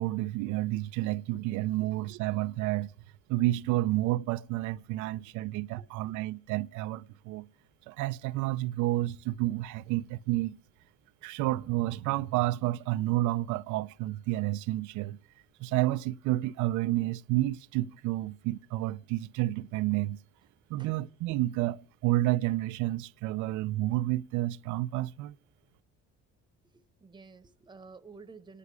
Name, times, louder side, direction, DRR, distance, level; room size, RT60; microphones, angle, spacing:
voice 1, 0.0-2.9 3.3-7.5 7.9-10.6 11.2-15.2 15.6-20.2 20.7-25.3, right 16 dB, 80° right, 0.6 m, -30 dB
voice 2, 4.9-5.3 5.8-5.9 20.8-20.9 26.7-28.6, right 4 dB, 15° right, 1.0 m, -52 dB
26.0 x 10.0 x 4.7 m
cardioid pair, 145°, 29 cm